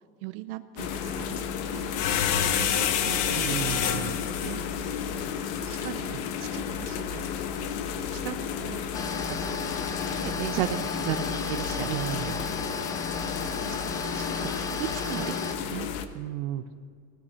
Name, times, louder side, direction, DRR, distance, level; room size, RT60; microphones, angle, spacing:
voice 1, 0.2-1.9 2.6-4.0 4.4-4.6 5.6-7.3 8.1-8.8 9.4-9.6 10.2-12.0 13.7-15.9, right 15 dB, 85° right, 10 dB, 0.7 m, -37 dB
sound 1, 0.8-16.0, left 8 dB, 70° left, 1.1 m, -30 dB
voice 2, 3.4-4.3 6.1-6.2 11.8-12.5 16.1-16.7, right 12 dB, 50° right, 10 dB, 0.8 m, -34 dB
sound 2, 8.9-15.5, left 4 dB, 10° left, 0.4 m, -34 dB
17.5 x 13.0 x 5.7 m, 2.2 s
cardioid pair, 180°, 29 cm